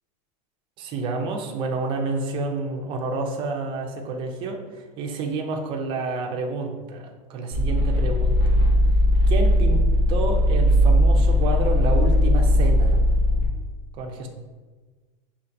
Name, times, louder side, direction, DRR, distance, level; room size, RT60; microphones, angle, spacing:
voice 1, 0.8-4.6 5.0-8.4 9.3-9.8 10.1-13.0 14.0-14.3, right 3 dB, 30° right, 3 dB, 0.4 m, -29 dB
sound 1, 7.5-13.5, left 1 dB, 45° left, 1.1 m, -18 dB
5.2 x 2.5 x 2.5 m, 1.4 s
supercardioid pair, 165°, 18 cm